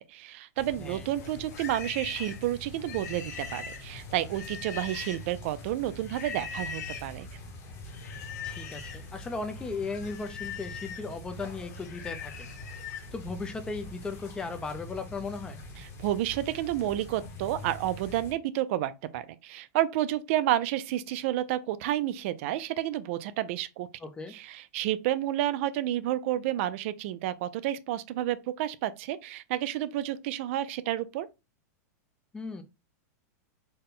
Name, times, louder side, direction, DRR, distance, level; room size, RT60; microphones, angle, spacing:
voice 1, 0.0-7.3 16.0-23.9 24.3-31.3, right 13 dB, 50° right, 0.4 m, -30 dB
sound 1, 0.6-18.3, left 1 dB, 30° left, 0.9 m, -44 dB
Livestock farm animals working animals, 1.2-5.4 6.0-7.1 7.9-9.1 9.4-13.1, left 7 dB, 90° left, 1.0 m, -41 dB
voice 2, 8.4-12.5 13.1-15.6 24.0-24.3 32.3-32.6, left 4 dB, 10° left, 0.4 m, -37 dB
4.2 x 2.1 x 3.6 m
supercardioid pair, 155°, 9 cm